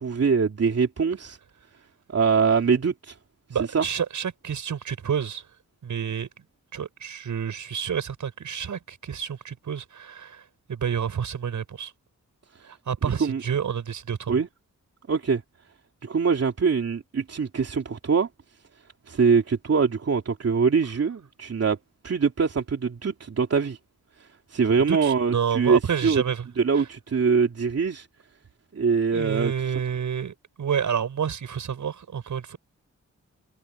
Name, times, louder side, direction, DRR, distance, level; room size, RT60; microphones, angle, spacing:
voice 1, 0.0-1.4 2.1-3.1 3.7-3.8 13.2-13.4 14.3-14.5 15.1-15.4 16.0-18.3 19.1-21.8 22.0-23.8 24.2-26.2 26.6-28.1 28.7-29.5, right 5 dB, 55° right, 3.1 m, -23 dB
voice 2, 3.5-5.5 5.8-6.3 6.7-11.9 12.6-14.4 24.9-26.5 26.7-26.9 29.1-32.6, right 7 dB, 75° right, 7.1 m, -29 dB
cardioid pair, 85°, 30 cm